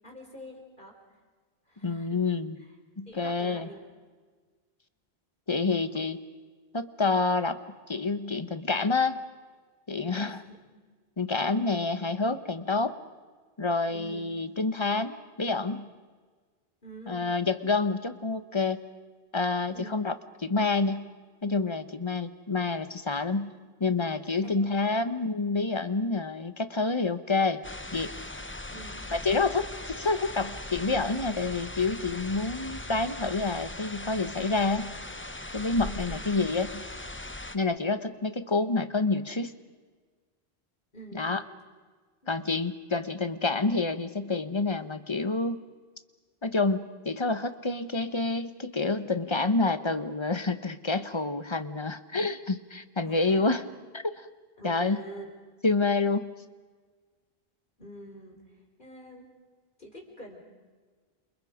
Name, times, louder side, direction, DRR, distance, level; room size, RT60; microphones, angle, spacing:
voice 1, 0.0-1.0 1.7-2.2 3.1-3.8 10.0-10.6 13.9-14.3 16.8-17.3 19.7-20.0 23.1-23.2 24.3-25.0 28.7-29.0 36.1-36.2 40.9-41.3 42.2-42.3 53.0-53.5 54.6-55.3 57.8-58.4 58.8-59.3 59.8-60.4, right 1 dB, 50° left, 1 dB, 4.4 m, -46 dB
voice 2, 1.8-2.6 3.0-3.7 5.5-6.2 6.7-7.6 7.9-9.2 9.9-10.4 11.2-13.0 13.6-15.9 17.1-18.8 19.3-20.1 20.4-21.1 21.4-23.5 23.8-27.6 27.9-28.1 29.1-34.9 35.5-36.8 37.5-39.5 41.1-41.4 42.3-45.6 46.4-53.6 53.9-54.3 54.6-55.0 55.6-56.3, left 3 dB, 30° left, 11 dB, 1.2 m, -28 dB
sound 1, 27.6-37.6, left 1 dB, 15° left, 0.8 m, -39 dB
30.0 x 28.0 x 5.1 m, 1.4 s
omnidirectional pair, 1.0 m